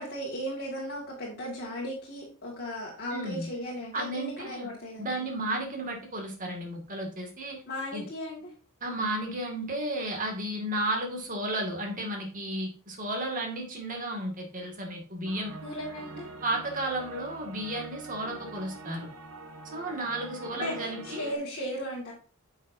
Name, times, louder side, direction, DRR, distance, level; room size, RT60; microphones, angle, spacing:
voice 1, 0.0-5.6 7.7-8.5 15.6-16.3 20.5-22.1, equal, 50° left, -4 dB, 2.0 m, -36 dB
voice 2, 3.1-3.5 3.9-4.7 5.0-7.6 7.9-8.1 8.8-15.6 16.4-19.1 19.7-21.3, right 1 dB, 40° right, 1 dB, 2.1 m, -33 dB
sound 1, 15.2-21.4, right 2 dB, 80° right, 1.1 m, -44 dB
9.5 x 5.6 x 2.7 m, 0.38 s
head